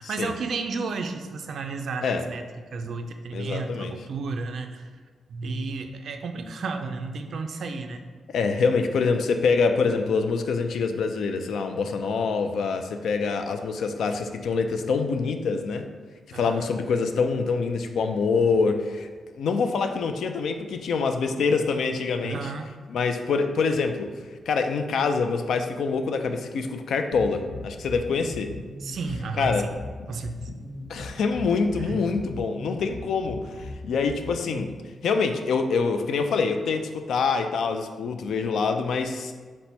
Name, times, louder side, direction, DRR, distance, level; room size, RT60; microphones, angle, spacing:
voice 1, 0.0-2.4 2.7-4.9 5.3-8.0 16.3-16.7 22.2-22.7 28.8-29.7 30.1-30.5 31.9-32.0, right 4 dB, 55° right, 6 dB, 0.3 m, -32 dB
voice 2, 3.3-3.9 8.3-15.9 16.3-19.1 19.4-22.5 22.9-24.1 24.5-28.5 29.4-29.6 30.9-34.7 35.0-39.3, left 4 dB, 70° left, 7 dB, 0.3 m, -25 dB
sound 1, 27.1-34.7, left 2 dB, 40° left, 0.7 m, -39 dB
4.1 x 2.1 x 4.4 m, 1.5 s
wide cardioid pair, 155°, 0 cm